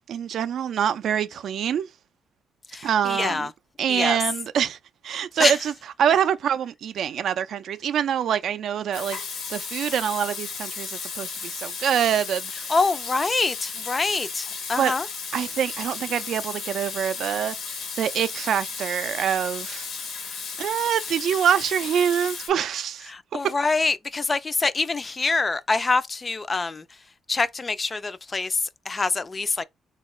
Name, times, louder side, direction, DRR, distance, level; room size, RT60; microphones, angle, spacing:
voice 1, 0.1-1.9 2.8-3.5 3.8-4.8 5.0-5.7 6.0-9.2 9.5-12.7 14.8-14.9 15.3-17.6 18.0-19.9 20.6-23.5, right 9 dB, 65° right, 0.3 m, -25 dB
voice 2, 2.7-3.5 3.9-4.2 5.4-5.6 12.7-15.1 23.0-26.8 27.3-29.6, left 3 dB, 30° left, 0.3 m, -25 dB
Water tap faucet / Sink (filling or washing), 8.9-22.5, left 5 dB, 75° left, 1.0 m, -34 dB
3.5 x 2.3 x 3.0 m
cardioid pair, 90°, 0 cm